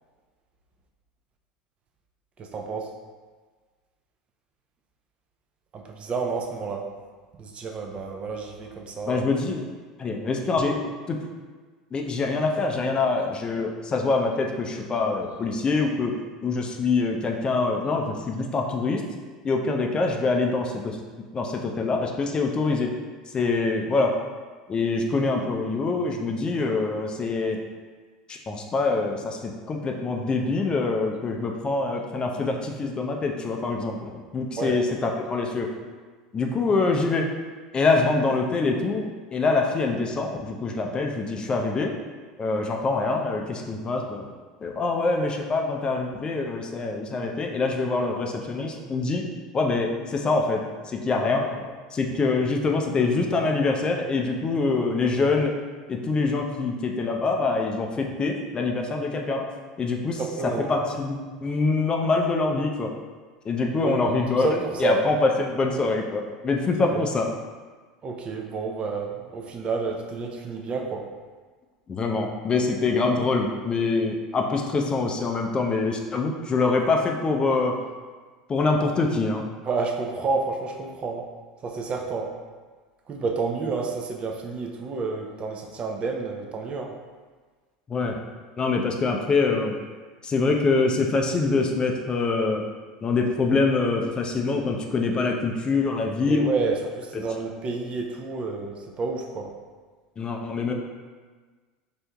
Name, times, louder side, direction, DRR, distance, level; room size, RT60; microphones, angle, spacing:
voice 1, 2.4-2.9 5.7-6.9 7.4-9.3 34.6-34.8 60.2-60.8 63.8-64.1 64.4-65.0 66.8-67.1 68.0-71.1 79.6-81.3 81.6-82.3 83.1-86.9 96.3-99.5, right 4 dB, 35° right, 2 dB, 0.4 m, -30 dB
voice 2, 9.0-9.6 10.0-11.2 11.9-16.1 16.4-19.0 19.4-21.0 21.3-22.9 23.3-24.2 24.7-27.6 28.3-35.7 36.3-37.3 37.7-39.1 39.3-41.9 42.4-44.3 44.6-49.3 49.5-55.5 55.9-59.5 59.8-62.9 63.5-67.3 71.9-77.8 78.5-79.4 87.9-88.2 88.6-89.7 90.2-92.6 93.0-96.5 97.1-97.2 100.2-100.7, left 3 dB, 25° left, 1 dB, 0.4 m, -25 dB
4.3 x 2.6 x 2.2 m, 1.4 s
figure-of-eight pair, 75°, 3 cm